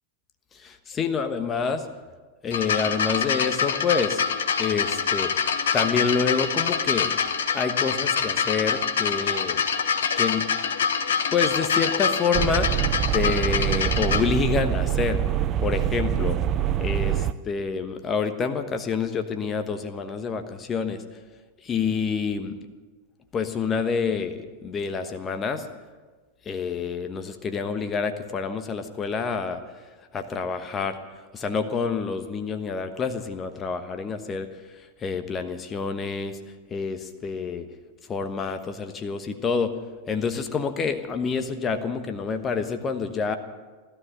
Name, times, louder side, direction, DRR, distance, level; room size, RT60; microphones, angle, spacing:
voice 1, 0.6-1.8 2.4-4.2 4.6-5.4 5.7-7.1 7.5-9.6 10.2-10.4 11.3-12.7 13.1-15.2 15.6-16.4 16.8-21.0 21.6-22.6 23.3-25.6 26.5-29.6 30.1-31.0 31.3-34.5 35.0-36.4 36.7-37.7 38.1-39.7 40.1-43.4, left 5 dB, 25° left, 8 dB, 1.2 m, -27 dB
sound 1, 2.5-14.2 15.1-15.2, left 6 dB, 65° left, 1.2 m, -25 dB
sound 2, 12.3-17.3, right 10 dB, 30° right, 0.6 m, -25 dB
16.5 x 12.5 x 6.8 m, 1.3 s
figure-of-eight pair, 90°, 0 cm